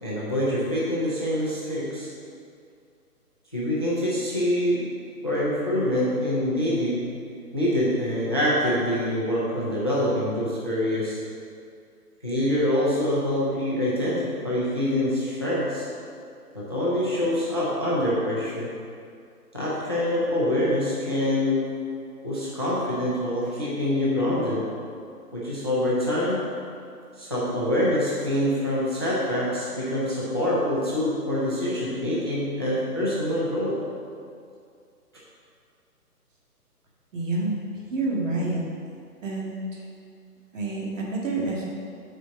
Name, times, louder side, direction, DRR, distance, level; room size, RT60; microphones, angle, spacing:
voice 1, 0.0-2.1 3.5-4.9 5.2-7.1 7.5-11.2 12.2-15.9 16.5-18.7 19.5-21.6 22.2-24.6 25.3-26.5 27.2-33.8, left 1 dB, 15° left, -7 dB, 0.5 m, -25 dB
voice 2, 37.1-37.5 37.9-38.6 39.2-39.6 40.5-41.6, right 2 dB, 50° right, -4 dB, 1.8 m, -28 dB
6.8 x 4.4 x 6.1 m, 2.4 s
hypercardioid pair, 155°, 47 cm